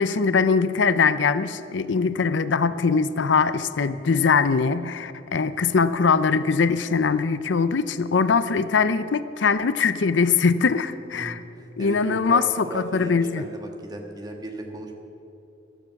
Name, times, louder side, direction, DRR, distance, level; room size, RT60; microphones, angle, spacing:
voice 1, 0.0-11.4 11.8-13.4, left 5 dB, 75° left, 13 dB, 0.5 m, -22 dB
voice 2, 11.1-14.9, right 1 dB, 20° right, 2 dB, 1.4 m, -36 dB
15.0 x 12.5 x 5.9 m, 2.8 s
head